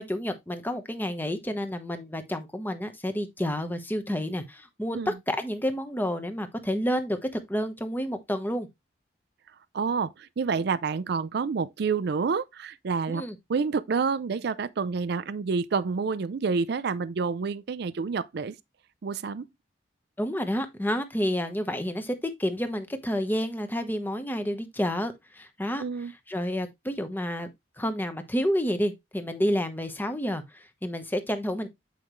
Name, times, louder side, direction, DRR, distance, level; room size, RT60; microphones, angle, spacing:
voice 1, 0.0-8.7 13.1-13.3 20.2-25.8 26.3-27.5 27.8-31.7, equal, 10° left, 1.0 m, -29 dB
voice 2, 9.7-13.2 13.5-18.6 19.0-19.5 25.8-26.1, right 5 dB, 60° right, 0.4 m, -28 dB
8.5 x 5.1 x 3.1 m
head